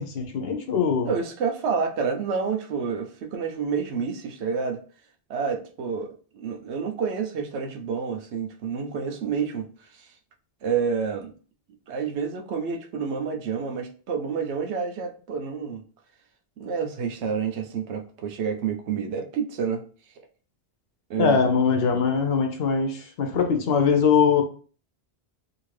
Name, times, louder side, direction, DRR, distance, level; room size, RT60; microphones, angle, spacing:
voice 1, 0.0-1.1 21.2-24.4, left 6 dB, 70° left, 5 dB, 0.8 m, -22 dB
voice 2, 1.1-4.8 5.3-9.7 9.9-10.1 10.6-11.3 11.9-15.8 16.6-19.8 21.1-21.4, right 6 dB, 90° right, 4 dB, 0.9 m, -29 dB
2.7 x 2.5 x 3.1 m, 0.40 s
omnidirectional pair, 1.1 m